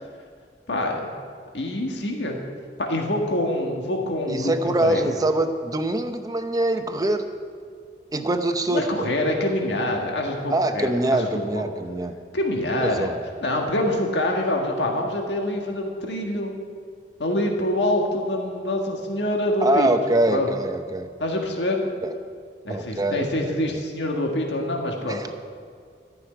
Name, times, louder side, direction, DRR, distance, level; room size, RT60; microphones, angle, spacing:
voice 1, 0.7-1.1 1.5-2.4 2.8-5.1 8.7-11.3 11.5-11.6 12.3-13.1 13.4-16.5 17.2-19.9 20.3-20.5 21.2-21.8 22.6-25.2, left 1 dB, 75° left, 1 dB, 1.6 m, -25 dB
voice 2, 4.3-7.2 8.1-9.1 10.5-12.1 12.8-13.2 19.6-21.1 22.0-22.1 22.7-23.8 25.1-25.3, right 1 dB, 20° right, 7 dB, 0.8 m, -24 dB
13.5 x 6.3 x 9.2 m, 2.1 s
head